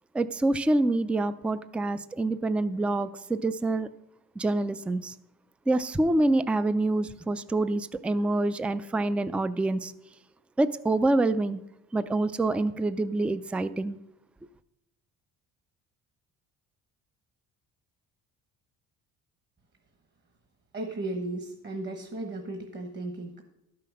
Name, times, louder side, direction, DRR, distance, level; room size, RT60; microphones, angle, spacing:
voice 1, 0.1-3.9 4.4-5.1 5.7-9.9 10.6-11.6 11.9-14.0, right 2 dB, 5° right, 14 dB, 0.3 m, -26 dB
voice 2, 20.7-23.4, right 2 dB, 35° right, 4 dB, 1.2 m, -35 dB
12.0 x 5.8 x 6.3 m, 0.83 s
cardioid pair, 110°, 32 cm